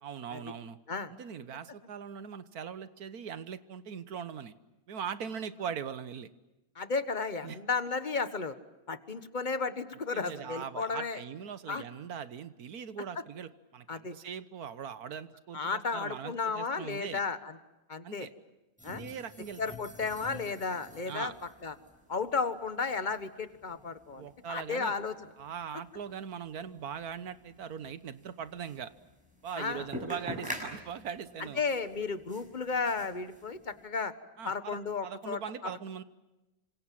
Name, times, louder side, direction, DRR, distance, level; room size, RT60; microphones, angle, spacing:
voice 1, 0.0-0.8 1.1-4.5 4.9-6.3 7.4-7.6 10.1-17.2 18.0-18.3 18.8-19.7 21.0-21.3 24.1-24.9 25.4-28.9 29.4-31.6 34.4-36.0, right 7 dB, 85° right, 14 dB, 1.7 m, -41 dB
voice 2, 6.7-8.5 8.9-11.2 11.7-11.8 13.9-14.1 15.5-17.5 17.9-18.3 18.8-19.0 19.6-21.3 21.6-21.7 22.1-25.1 29.6-30.2 31.6-34.1 34.4-35.7, left 4 dB, 35° left, 11 dB, 1.4 m, -33 dB
sound 1, 18.8-33.8, left 1 dB, 5° right, 6.3 m, -47 dB
28.5 x 26.0 x 7.6 m, 1.0 s
omnidirectional pair, 1.5 m